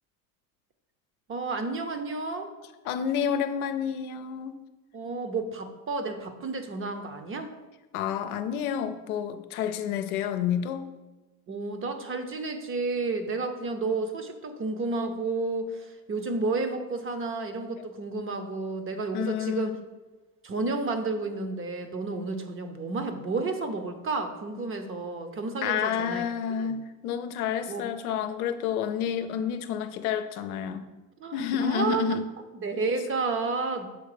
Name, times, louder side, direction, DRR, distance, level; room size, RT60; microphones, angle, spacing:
voice 1, 1.3-2.5 4.9-7.5 11.5-19.7 20.4-26.3 26.6-26.8 27.7-27.9 31.2-32.2 32.5-33.9, right 3 dB, 30° right, 8 dB, 0.8 m, -31 dB
voice 2, 2.9-4.6 7.9-10.9 19.1-19.8 25.6-30.8 31.3-32.3, left 8 dB, 90° left, 9 dB, 0.6 m, -29 dB
7.2 x 3.3 x 4.9 m, 1.2 s
supercardioid pair, 95°, 43 cm